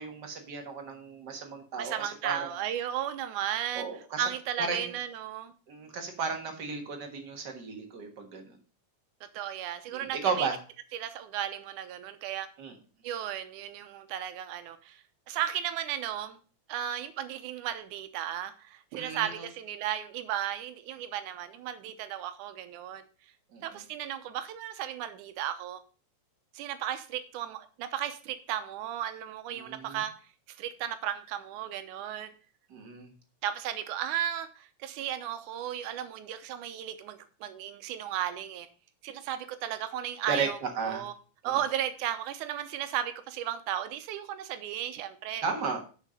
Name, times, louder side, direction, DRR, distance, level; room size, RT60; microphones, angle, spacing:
voice 1, 0.0-2.5 3.7-4.3 4.6-4.9 5.7-8.6 9.9-10.5 12.6-12.7 18.9-19.5 23.5-23.8 29.5-30.0 32.7-33.1 40.3-41.1 41.4-41.6 45.4-45.8, right 5 dB, 45° right, 1.5 m, -34 dB
voice 2, 1.8-3.9 4.2-5.5 9.3-10.5 10.9-12.5 13.0-16.4 16.7-23.0 23.6-25.8 26.5-30.1 30.5-32.3 33.4-38.7 39.0-41.1 41.4-45.4, right 10 dB, 80° right, 2.3 m, -35 dB
6.7 x 6.3 x 6.3 m
omnidirectional pair, 3.6 m